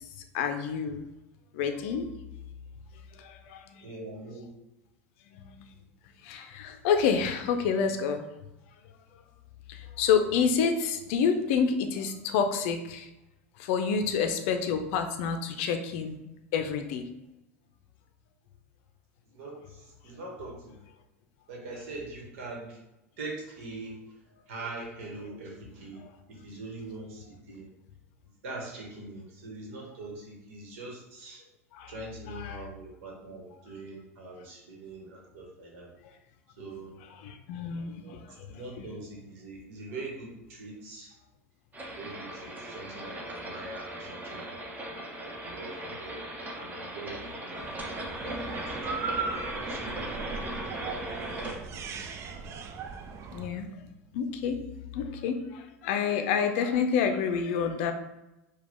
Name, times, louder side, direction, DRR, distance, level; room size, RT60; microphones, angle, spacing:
voice 1, 0.3-1.0 1.5-2.1 3.2-3.8 5.3-5.7 6.2-8.2 9.7-13.1 13.6-16.2 16.5-17.0 31.7-31.9 32.3-32.6 37.2-38.5 53.3-53.7 54.1-54.6 54.9-57.9, left 6 dB, 60° left, 7 dB, 0.5 m, -28 dB
voice 2, 3.8-4.5 19.3-20.7 21.5-22.8 23.2-24.0 24.5-26.0 26.3-27.7 28.4-31.4 31.9-35.9 36.6-37.0 38.0-38.2 38.5-41.1 42.0-44.6 45.2-46.3 46.5-47.1 47.4-47.7 48.2-51.9, right 2 dB, 65° right, -2 dB, 1.3 m, -43 dB
sound 1, 41.7-51.5, right 1 dB, 20° right, 1.0 m, -38 dB
sound 2, 47.5-53.5, right 5 dB, 40° right, 0.4 m, -38 dB
4.8 x 2.4 x 3.6 m, 0.94 s
hypercardioid pair, 80°, 8 cm